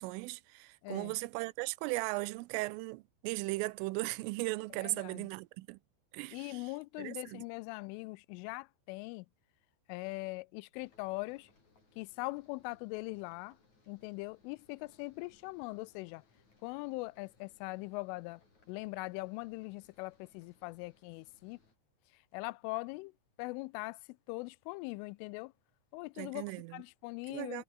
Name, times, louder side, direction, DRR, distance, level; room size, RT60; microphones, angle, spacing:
voice 1, 0.0-5.8 6.1-6.6 7.0-7.4 26.2-26.8 27.3-27.6, right 23 dB, 90° right, 3.3 m, -37 dB
voice 2, 0.8-1.1 4.8-5.3 6.3-9.3 9.9-11.5 12.0-13.6 13.9-16.2 16.6-18.4 18.7-21.6 22.3-23.1 23.4-24.0 24.3-25.5 25.9-26.5 26.7-27.6, left 24 dB, 85° left, 3.0 m, -41 dB
sound 1, 10.7-21.8, left 3 dB, 35° left, 8.2 m, -69 dB
omnidirectional pair, 5.7 m